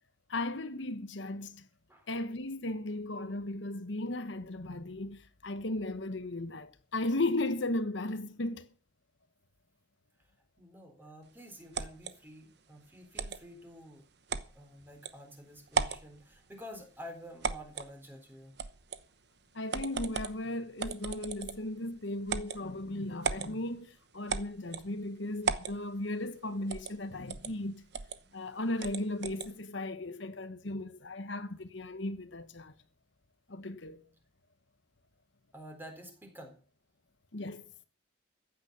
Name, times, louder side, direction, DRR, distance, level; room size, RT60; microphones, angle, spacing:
voice 1, 0.3-1.7 2.1-8.7 19.5-27.8 28.3-32.7 33.5-34.0 37.3-37.6, left 2 dB, 70° left, 1.2 m, -36 dB
voice 2, 10.6-14.0 14.5-18.5 35.5-36.6, equal, 10° right, 4.0 m, -49 dB
sound 1, 11.7-12.1 13.2-13.4 14.3-14.5 15.0-15.1 15.7-16.1 17.4-17.9 18.6-19.0 19.7-20.4 20.8-21.7 22.3-22.6 23.2-23.5 24.3-24.9 25.4-25.8 26.7-27.0 27.3-27.5 27.9-28.2 28.8-29.5, right 5 dB, 55° right, 1.0 m, -35 dB
15.0 x 9.4 x 6.8 m
head